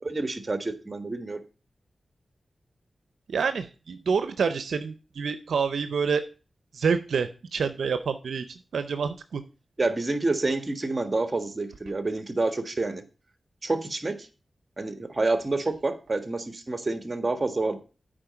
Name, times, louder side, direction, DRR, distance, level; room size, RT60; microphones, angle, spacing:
voice 1, 0.0-1.4 9.8-13.0 13.6-14.3 14.8-17.8, right 2 dB, 40° right, 9 dB, 1.6 m, -28 dB
voice 2, 3.3-6.2 6.7-9.4, right 5 dB, 90° right, 10 dB, 0.6 m, -27 dB
8.7 x 5.0 x 6.9 m, 0.34 s
cardioid pair, 45°, 0 cm